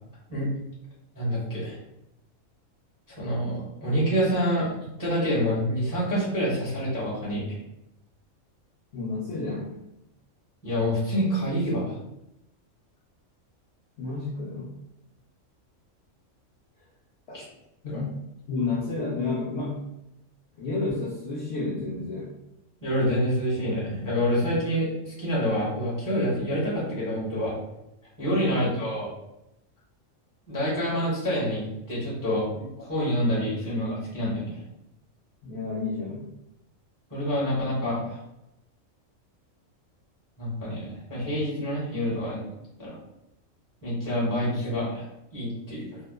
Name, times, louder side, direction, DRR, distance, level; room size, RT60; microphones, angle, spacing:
voice 1, 1.1-1.8 3.2-4.7 5.0-7.6 10.6-12.0 17.3-17.4 17.8-18.0 22.8-27.5 28.2-29.1 30.5-34.6 37.1-38.2 40.4-42.4 42.8-43.0 43.8-45.0 45.3-46.0, equal, 15° left, -7 dB, 1.0 m, -27 dB
voice 2, 8.9-9.7 14.0-14.7 17.3-17.4 17.8-18.1 18.5-19.8 20.6-22.3 28.5-28.8 35.4-36.3, left 3 dB, 65° left, -6 dB, 0.8 m, -31 dB
2.8 x 2.1 x 2.2 m, 0.86 s
omnidirectional pair, 1.4 m